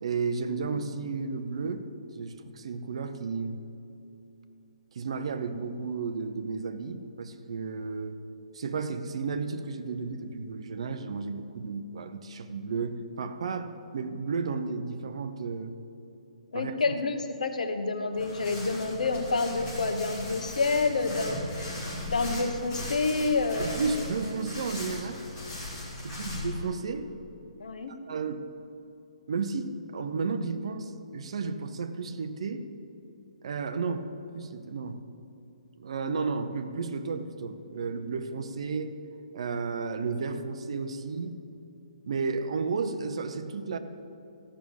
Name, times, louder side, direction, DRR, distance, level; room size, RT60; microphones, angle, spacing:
voice 1, 0.0-1.9 2.1-3.6 4.9-8.2 8.5-15.7 16.5-16.9 23.6-25.2 26.0-27.1 28.1-28.5 29.3-32.7 33.4-35.0 35.8-38.9 39.3-41.4 42.1-43.8, right 4 dB, 50° right, 9 dB, 0.8 m, -33 dB
voice 2, 16.5-21.4 22.1-23.8 27.6-27.9, left 3 dB, 90° left, 7 dB, 1.2 m, -28 dB
sound 1, 18.1-26.7, left 2 dB, 20° left, 2.7 m, -38 dB
14.5 x 6.3 x 7.1 m, 2.8 s
hypercardioid pair, 170°, 4 cm